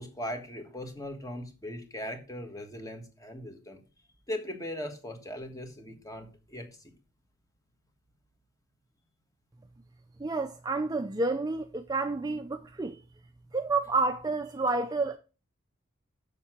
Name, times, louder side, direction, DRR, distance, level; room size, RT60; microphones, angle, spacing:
voice 1, 0.0-3.8 4.3-6.9, left 1 dB, 15° left, 1.5 m, -39 dB
voice 2, 10.2-13.0 13.5-15.2, right 3 dB, 20° right, 0.5 m, -29 dB
6.9 x 6.7 x 6.0 m
head